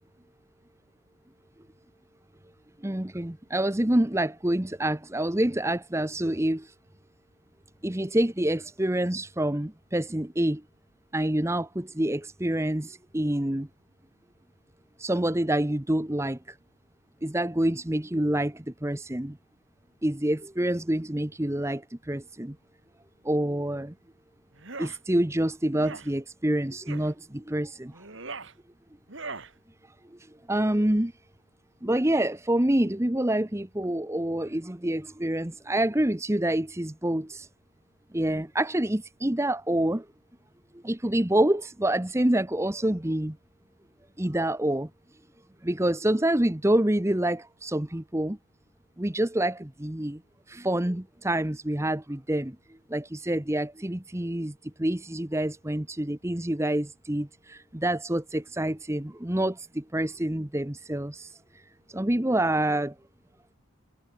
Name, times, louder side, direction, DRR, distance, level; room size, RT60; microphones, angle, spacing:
voice 1, 2.8-6.7 7.8-10.6 11.1-13.7 15.0-16.4 17.2-19.4 20.0-22.5 23.2-23.9 24.8-27.9 30.5-31.1 31.8-37.5 38.1-40.0 40.8-43.4 44.2-44.9 45.6-48.4 49.0-50.2 50.5-52.6 52.9-61.4 61.9-62.9, right 1 dB, 15° right, 0.9 m, -27 dB
sound 1, 24.5-25.0 25.7-26.1 26.8-27.1 27.9-28.5 29.1-29.5, right 4 dB, 55° right, 2.9 m, -40 dB
head